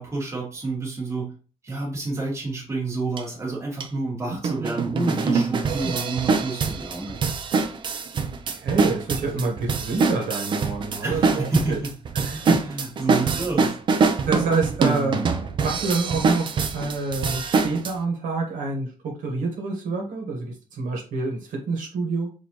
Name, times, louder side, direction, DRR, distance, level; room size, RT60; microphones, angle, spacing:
voice 1, 0.0-1.3 1.6-7.2 9.2-9.3 11.0-11.9 12.3-12.4 12.6-13.7, right 3 dB, 20° right, -4 dB, 1.7 m, -29 dB
sound 1, 3.2-3.3 3.8-3.9 4.4-17.9, right 4 dB, 35° right, 0.4 m, -24 dB
voice 2, 8.5-11.8 12.2-12.6 14.2-15.2 15.6-22.3, right 3 dB, 65° right, 0 dB, 1.3 m, -27 dB
6.2 x 2.6 x 3.0 m, 0.36 s
cardioid pair, 180°, 14 cm